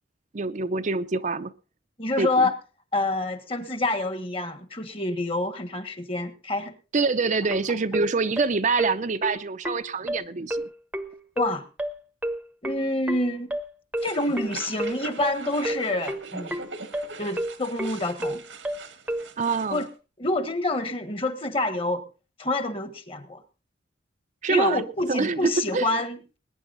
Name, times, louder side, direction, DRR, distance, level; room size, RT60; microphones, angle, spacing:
voice 1, 0.3-1.5 2.2-2.5 6.9-10.7 19.4-19.9 24.4-24.8 25.1-25.9, right 4 dB, 40° right, 0.6 m, -26 dB
voice 2, 2.0-2.5 2.9-6.7 11.4-11.6 12.6-13.5 14.0-16.5 17.2-18.4 19.7-19.9 20.2-22.0 22.4-23.4 24.5-26.2, left 2 dB, 30° left, 1.5 m, -27 dB
sound 1, 7.3-19.3, right 1 dB, 10° right, 0.9 m, -31 dB
sound 2, 14.0-19.9, right 4 dB, 90° right, 1.7 m, -41 dB
21.0 x 9.9 x 4.0 m
head